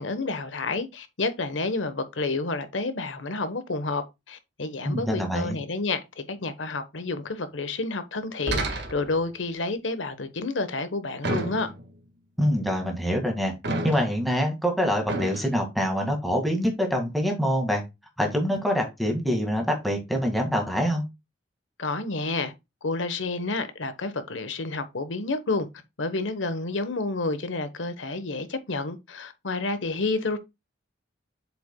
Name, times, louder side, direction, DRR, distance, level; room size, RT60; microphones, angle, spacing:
voice 1, 0.0-11.7 21.8-22.5 22.8-25.7 26.0-30.4, left 3 dB, 85° left, 1.1 m, -30 dB
voice 2, 4.8-5.6 12.4-13.5 13.8-17.8 18.2-21.0, equal, ahead, 1.9 m, -25 dB
sound 1, 8.5-9.3 11.2-12.0 13.6-14.3 15.1-15.5, right 2 dB, 65° right, 1.6 m, -30 dB
7.8 x 5.9 x 2.2 m
head